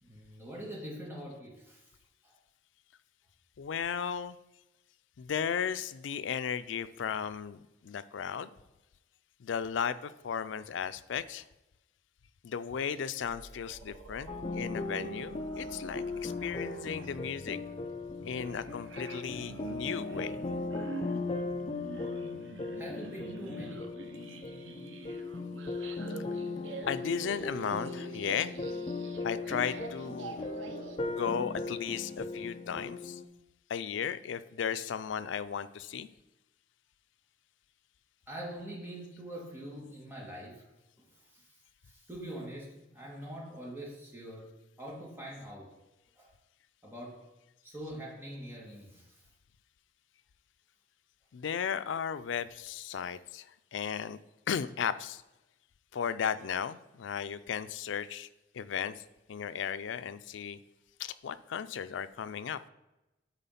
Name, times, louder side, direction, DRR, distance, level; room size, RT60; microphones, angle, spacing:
voice 1, 0.0-1.9 2.2-2.4 22.8-23.9 38.3-40.7 41.3-41.5 41.8-44.5 44.8-45.8 46.2-46.3 46.8-47.3 47.6-49.2, right 1 dB, 10° right, -3 dB, 1.9 m, -44 dB
voice 2, 3.6-4.4 5.2-8.5 9.4-11.5 12.4-17.6 18.2-20.4 26.9-28.5 29.2-30.4 31.1-33.2 33.7-36.1 51.3-54.2 54.5-55.2 55.9-58.3 58.5-60.6 61.0-62.6, left 7 dB, 80° left, 13 dB, 0.4 m, -35 dB
sound 1, 13.2-31.0, right 3 dB, 85° right, 0.7 m, -47 dB
sound 2, 14.3-33.2, left 3 dB, 30° left, 0.5 m, -38 dB
9.1 x 4.2 x 5.7 m, 0.97 s
head